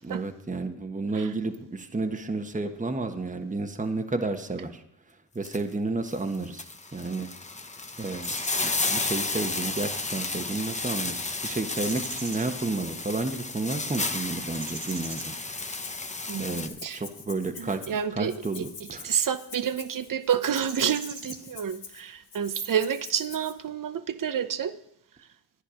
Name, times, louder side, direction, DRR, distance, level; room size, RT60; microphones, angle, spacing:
voice 1, 0.0-4.8 5.1-7.3 8.0-15.3 16.4-17.8 18.1-19.2 21.3-21.4, right 3 dB, 20° right, 6 dB, 1.3 m, -31 dB
sound 1, 5.4-5.6 6.1-16.7, left 3 dB, 15° left, 1.0 m, -32 dB
sound 2, 8.2-9.0 9.9-10.2 10.7-11.0 11.4-12.5 14.5-15.3 20.6-21.4, right 4 dB, 65° right, 2.5 m, -42 dB
Rattle (instrument), 15.5-16.0 16.3-23.5, left 6 dB, 75° left, 2.1 m, -45 dB
voice 2, 16.3-17.0 17.6-18.6 19.0-24.8, right 8 dB, 50° right, 12 dB, 0.9 m, -29 dB
11.5 x 10.0 x 5.1 m, 0.74 s
cardioid pair, 60°, 43 cm